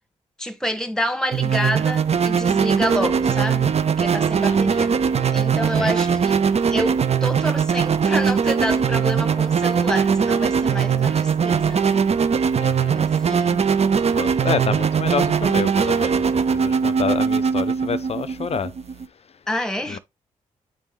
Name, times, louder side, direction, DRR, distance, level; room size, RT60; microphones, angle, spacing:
voice 1, 0.4-5.0 5.3-6.4 6.7-12.0 12.9-13.6 19.5-20.0, equal, 5° left, 1.3 m, -28 dB
sound 1, 1.3-19.1, right 6 dB, 50° right, 0.7 m, -20 dB
voice 2, 4.4-4.9 5.8-6.2 12.6-13.0 14.1-18.7 19.9-20.0, left 6 dB, 45° left, 0.5 m, -28 dB
9.2 x 3.5 x 3.1 m
supercardioid pair, 50°, 14 cm